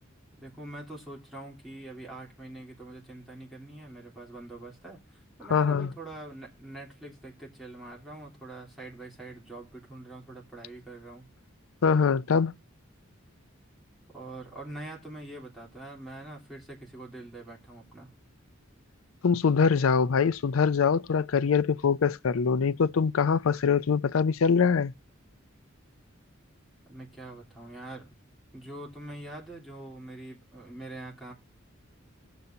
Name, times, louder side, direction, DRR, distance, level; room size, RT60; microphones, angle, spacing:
voice 1, 0.4-11.3 14.1-18.1 26.8-28.1 28.5-31.3, right 2 dB, ahead, 3.2 m, -44 dB
voice 2, 5.5-5.9 11.8-12.5 19.2-24.9, left 6 dB, 80° left, 0.5 m, -23 dB
18.0 x 6.9 x 2.7 m
head